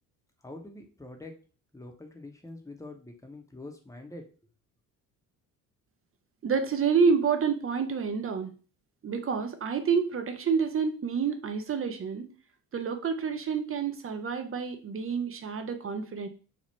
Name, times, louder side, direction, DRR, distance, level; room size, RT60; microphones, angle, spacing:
voice 1, 0.4-1.3 1.7-4.2, left 2 dB, 5° left, 3 dB, 1.0 m, -45 dB
voice 2, 6.4-8.5 9.0-12.3 12.7-16.3, right 6 dB, 30° right, 7 dB, 0.7 m, -28 dB
3.6 x 2.4 x 4.2 m, 0.38 s
hypercardioid pair, 55°, 46 cm